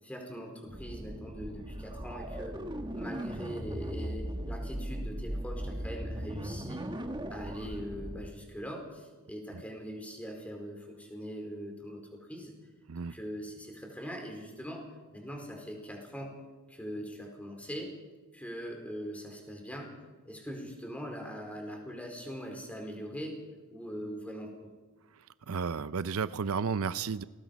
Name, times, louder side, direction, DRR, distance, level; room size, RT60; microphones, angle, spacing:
voice 1, 0.0-2.6 2.9-6.9 7.3-12.5 13.0-14.9 15.1-16.4 16.7-17.9 18.3-19.9 20.2-23.4 23.7-24.7, equal, 5° left, 2 dB, 4.3 m, -41 dB
sound 1, 0.7-8.3, right 1 dB, 20° right, 1.4 m, -38 dB
voice 2, 25.5-27.2, right 5 dB, 80° right, 15 dB, 0.6 m, -32 dB
28.5 x 19.5 x 5.3 m, 1.3 s
head